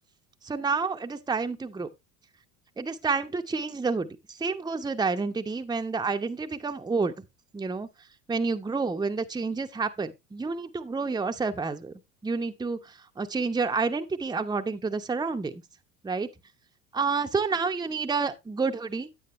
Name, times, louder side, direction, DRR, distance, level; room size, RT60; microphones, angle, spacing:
voice 1, 0.4-1.9 2.8-7.1 7.5-7.9 8.3-11.9 12.2-15.6 16.0-16.3 16.9-19.1, right 4 dB, 10° right, 0.9 m, -29 dB
9.3 x 8.8 x 3.2 m
hypercardioid pair, 75°, 44 cm